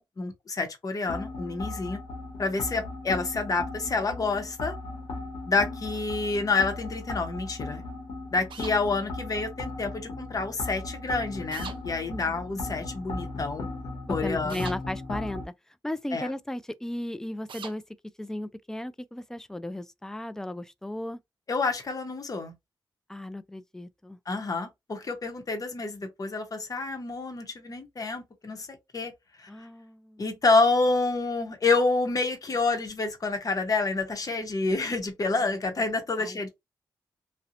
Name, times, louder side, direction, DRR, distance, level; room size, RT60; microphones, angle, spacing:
voice 1, 0.0-2.0 2.4-4.7 5.5-7.8 8.3-13.7 14.1-14.7 16.1-16.3 21.5-22.5 24.3-29.1 29.4-29.5 30.2-36.5, left 3 dB, 45° left, 0.8 m, -28 dB
sound 1, 1.0-15.5, left 2 dB, 80° left, 0.9 m, -37 dB
sound 2, 8.5-8.8 11.5-11.8 14.5-14.8 17.5-17.8, right 7 dB, 75° right, 0.5 m, -40 dB
voice 2, 12.1-12.4 14.1-15.5 15.8-17.8 18.2-21.2 23.1-24.2 29.5-30.3 35.4-35.5 36.2-36.5, left 1 dB, 5° left, 0.3 m, -36 dB
2.8 x 2.0 x 2.5 m
cardioid pair, 65°, 9 cm